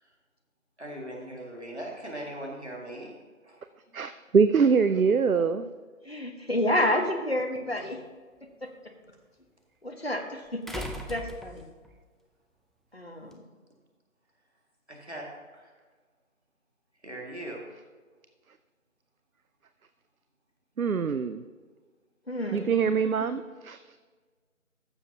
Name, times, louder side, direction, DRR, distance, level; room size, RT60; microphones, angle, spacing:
voice 1, 0.8-3.2 14.9-15.7 17.0-17.7, right 1 dB, 50° right, -1 dB, 2.2 m, -39 dB
voice 2, 3.9-5.7 20.8-21.4 22.5-24.0, right 5 dB, 80° right, 11 dB, 0.6 m, -24 dB
voice 3, 6.0-8.0 8.4-8.7 9.8-11.7 12.9-13.4 22.3-22.8 23.2-23.3, left 1 dB, 45° left, 3 dB, 1.2 m, -30 dB
sound 1, 7.4-7.5 10.7-12.0 13.3-13.4, left 1 dB, ahead, 0.5 m, -39 dB
15.0 x 7.1 x 2.8 m, 1.4 s
figure-of-eight pair, 180°, 41 cm